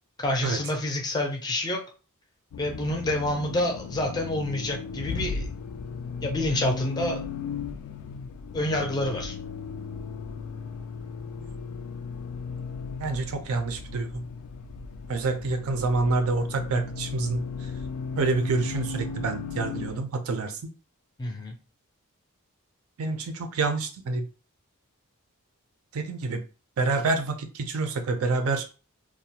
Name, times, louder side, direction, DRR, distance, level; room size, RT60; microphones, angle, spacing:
voice 1, 0.2-1.8 2.6-5.5 6.2-7.2 8.5-9.4 21.2-21.5, left 1 dB, 20° left, 0.4 m, -28 dB
Accelerating revving vroom, 2.5-20.0, left 5 dB, 85° left, 0.3 m, -36 dB
voice 2, 13.0-14.2 15.1-17.4 18.2-20.6 23.0-24.3 25.9-26.4 26.8-28.7, right 3 dB, 70° right, 0.4 m, -27 dB
2.3 x 2.1 x 2.7 m
head